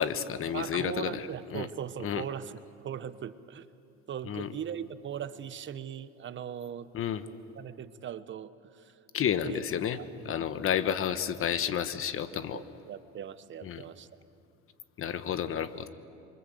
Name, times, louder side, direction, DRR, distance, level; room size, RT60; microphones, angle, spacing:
voice 1, 0.0-1.2 1.5-1.7 2.0-2.2 4.2-4.5 6.9-7.2 9.1-10.0 10.2-12.6 13.6-13.8 15.0-15.9, left 9 dB, 45° left, 12 dB, 1.3 m, -30 dB
voice 2, 0.5-3.7 4.1-6.9 7.5-9.0 9.4-10.6 12.3-14.1, right 9 dB, 35° right, 13 dB, 1.0 m, -40 dB
27.0 x 24.0 x 7.8 m, 2.6 s
supercardioid pair, 115°, 32 cm